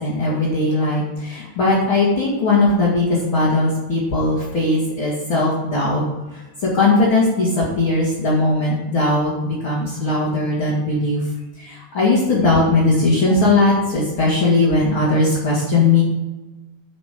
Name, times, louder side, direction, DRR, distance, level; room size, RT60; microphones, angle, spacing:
voice 1, 0.0-6.0 6.3-11.2 11.6-16.0, left 2 dB, 40° left, -7 dB, 2.1 m, -19 dB
11.5 x 5.5 x 5.0 m, 1.1 s
omnidirectional pair, 4.8 m